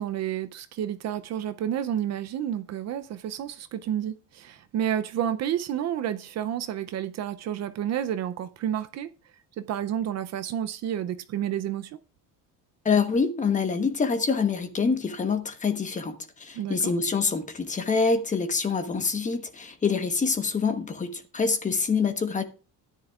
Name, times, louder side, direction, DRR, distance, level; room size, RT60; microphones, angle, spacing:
voice 1, 0.0-9.1 9.6-12.0 16.5-16.9, right 10 dB, 50° right, 0.6 m, -30 dB
voice 2, 12.8-22.4, left 5 dB, 20° left, 1.1 m, -26 dB
13.5 x 10.5 x 2.4 m
cardioid pair, 155°, 33 cm